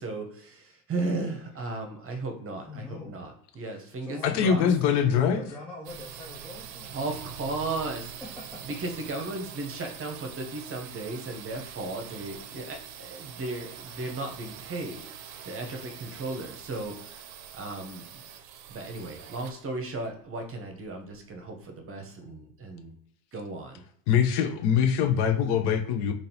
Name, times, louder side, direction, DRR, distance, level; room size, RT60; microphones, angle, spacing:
voice 1, 0.0-4.6 6.8-8.1 8.6-15.0 15.4-18.3 18.7-22.9 23.3-23.8, right 2 dB, 25° right, 4 dB, 0.9 m, -35 dB
voice 2, 2.6-3.2 4.0-7.0 8.2-8.6, left 2 dB, 5° left, -5 dB, 0.3 m, -42 dB
voice 3, 4.2-5.5 24.1-26.1, left 7 dB, 50° left, 6 dB, 0.7 m, -23 dB
sound 1, 5.8-21.5, right 9 dB, 55° right, 0.7 m, -44 dB
3.7 x 2.6 x 2.9 m, 0.66 s
hypercardioid pair, 85°, 50 cm